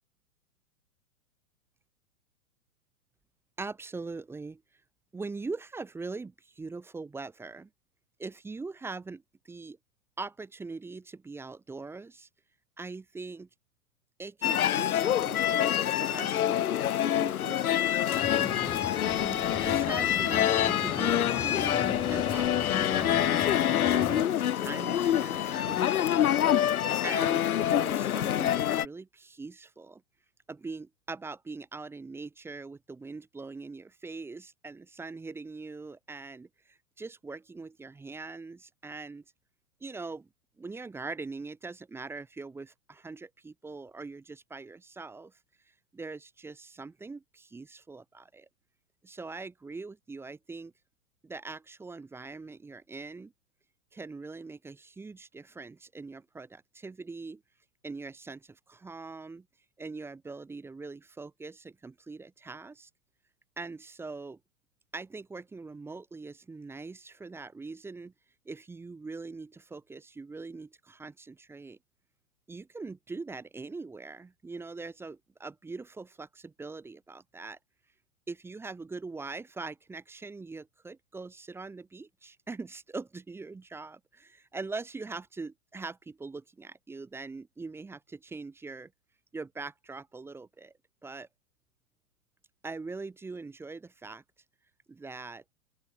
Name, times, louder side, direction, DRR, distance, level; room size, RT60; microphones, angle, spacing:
voice 1, 3.6-4.6 5.1-7.7 8.2-9.8 10.2-12.3 12.8-13.5 14.2-18.9 19.6-23.4 23.9-26.3 27.0-30.0 30.5-39.2 39.8-40.3 40.6-45.3 45.9-48.5 49.0-50.7 51.2-53.3 53.9-57.4 57.8-59.5 59.8-62.9 63.6-64.4 64.9-68.1 68.5-71.8 72.5-77.6 78.3-88.9 89.3-90.7 91.0-91.3 92.6-94.2 94.9-95.4, right 3 dB, 5° right, 0.7 m, -42 dB
sound 1, 14.4-28.9, left 11 dB, 75° left, 0.7 m, -26 dB
sound 2, 18.1-24.2, left 5 dB, 10° left, 1.9 m, -38 dB
open air
figure-of-eight pair, 110°, 44 cm